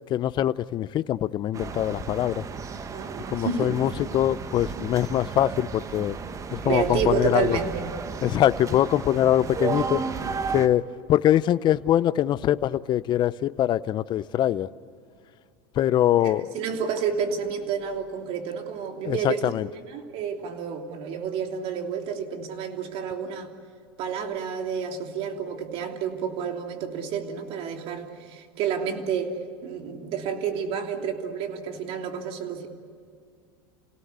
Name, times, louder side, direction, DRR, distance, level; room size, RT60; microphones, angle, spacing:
voice 1, 0.1-2.4 3.3-6.2 6.5-7.6 8.2-10.0 10.5-14.7 15.8-16.5 19.0-19.7, left 12 dB, 40° left, 0.7 m, -23 dB
sound 1, 1.5-10.7, right 5 dB, 25° right, 1.2 m, -33 dB
voice 2, 2.9-3.8 6.6-7.9 16.2-19.6 19.9-23.5 24.0-32.7, right 7 dB, 55° right, 3.1 m, -30 dB
28.5 x 18.0 x 8.3 m
supercardioid pair, 105°, 12 cm